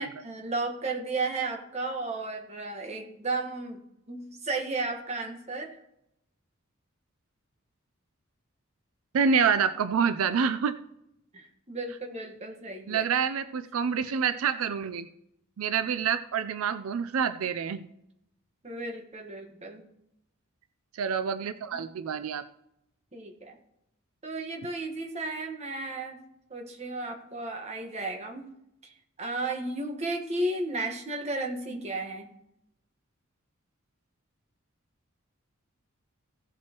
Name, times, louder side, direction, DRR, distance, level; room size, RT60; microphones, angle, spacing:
voice 1, 0.0-3.8 4.1-5.8 11.3-13.1 18.6-19.8 23.1-23.6 24.2-26.2 26.5-28.5 28.8-32.3, right 2 dB, 30° right, 3 dB, 1.3 m, -34 dB
voice 2, 9.1-10.8 12.9-15.1 15.6-17.9 21.0-22.4, right 6 dB, 90° right, 12 dB, 0.4 m, -27 dB
16.0 x 7.4 x 2.9 m, 0.80 s
head